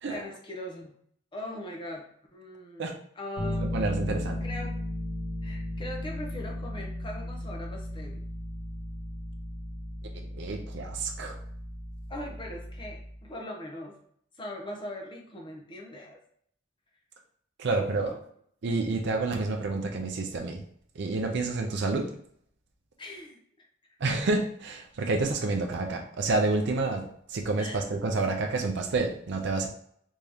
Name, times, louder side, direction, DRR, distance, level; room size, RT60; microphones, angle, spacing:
voice 1, 0.1-1.0 1.3-3.7 4.4-4.8 5.4-8.3 12.1-14.0 14.4-16.2 17.7-18.2 23.0-23.7 27.6-27.8, left 1 dB, 25° left, 0 dB, 0.6 m, -40 dB
Bass guitar, 3.4-13.2, left 1 dB, 45° left, 0.9 m, -36 dB
voice 2, 3.7-4.4 10.1-11.4 17.6-18.1 18.6-20.6 21.0-22.1 24.0-29.7, right 3 dB, 55° right, 2 dB, 0.4 m, -29 dB
3.5 x 2.7 x 3.3 m, 0.66 s
head